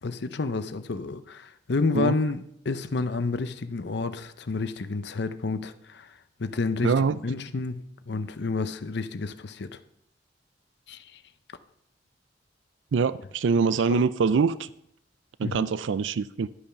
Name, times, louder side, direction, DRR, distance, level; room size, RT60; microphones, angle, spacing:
voice 1, 0.0-7.8 8.1-9.8 10.9-11.2 13.9-14.0 15.4-15.7, left 3 dB, 65° left, 11 dB, 0.7 m, -30 dB
voice 2, 6.8-7.2 12.9-14.7 15.4-16.5, right 5 dB, 90° right, 16 dB, 0.4 m, -24 dB
11.5 x 8.5 x 5.8 m, 0.74 s
head